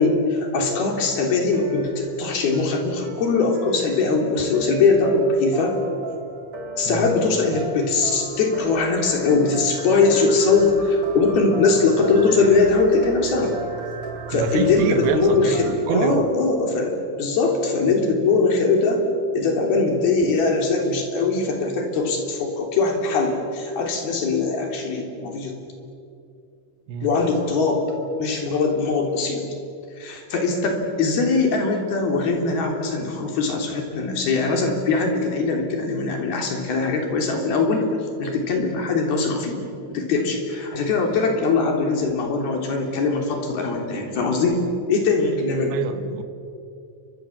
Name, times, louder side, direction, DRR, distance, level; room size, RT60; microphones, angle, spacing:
voice 1, 0.0-5.8 6.8-13.6 14.3-19.0 19.3-25.6 27.0-27.9 28.2-29.4 30.0-37.9 38.2-45.8, left 3 dB, 60° left, 2 dB, 5.2 m, -21 dB
sound 1, 0.6-15.7, right 2 dB, 40° right, 4.0 m, -36 dB
voice 2, 14.3-16.3 26.9-27.1 45.7-46.2, right 6 dB, 75° right, 9 dB, 3.4 m, -26 dB
29.5 x 24.5 x 7.4 m, 2.6 s
omnidirectional pair, 5.2 m